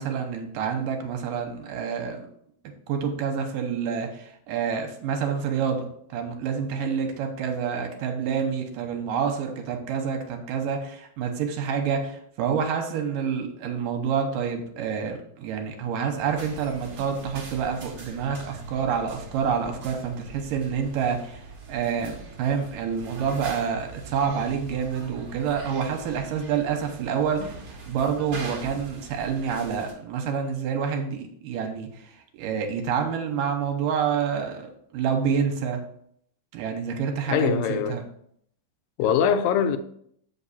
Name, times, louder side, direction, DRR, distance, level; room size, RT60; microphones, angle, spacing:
voice 1, 0.0-2.3 2.9-21.4 21.7-35.8 36.5-38.0, right 7 dB, 75° right, 2.5 m, -28 dB
sound 1, 16.2-29.9, right 3 dB, 55° right, 1.3 m, -42 dB
voice 2, 37.3-38.0 39.0-39.8, left 8 dB, 85° left, 2.3 m, -22 dB
7.2 x 5.4 x 4.2 m
omnidirectional pair, 4.1 m